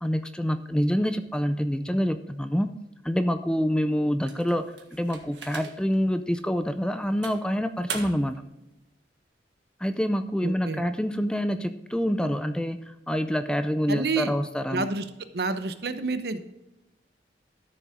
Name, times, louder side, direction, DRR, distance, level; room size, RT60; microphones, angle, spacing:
voice 1, 0.0-2.7 3.0-4.6 4.9-8.3 9.8-14.9, equal, 5° left, 9 dB, 0.5 m, -26 dB
sound 1, 4.2-6.0 6.5-6.6 7.2-8.4, right 6 dB, 90° right, 1.6 m, -40 dB
voice 2, 10.4-10.8 13.9-14.3 14.7-15.0 15.3-16.4, right 3 dB, 60° right, 10 dB, 0.9 m, -28 dB
13.0 x 7.1 x 3.7 m, 0.95 s
head